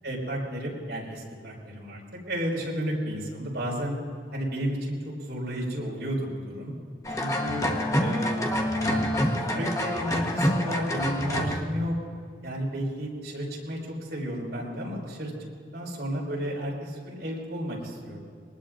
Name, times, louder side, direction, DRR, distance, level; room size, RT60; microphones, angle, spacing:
voice 1, 0.0-4.0 4.3-6.7 7.1-7.6 8.0-11.9 12.4-15.3 15.7-18.2, equal, 70° right, -3 dB, 5.2 m, -32 dB
sound 1, 7.0-11.6, left 1 dB, 20° left, 1.2 m, -27 dB
23.0 x 19.5 x 2.6 m, 2.2 s
head